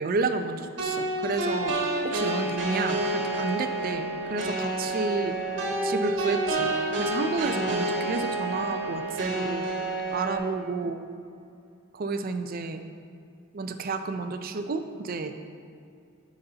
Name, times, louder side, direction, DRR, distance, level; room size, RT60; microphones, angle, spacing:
voice 1, 0.0-1.7 2.0-5.3 5.8-9.7 10.1-11.0 11.9-12.8 13.5-15.3, right 3 dB, 45° right, 8 dB, 0.4 m, -31 dB
sound 1, 0.8-10.4, right 2 dB, 60° right, 1.3 m, -29 dB
11.0 x 4.1 x 3.9 m, 2.4 s
head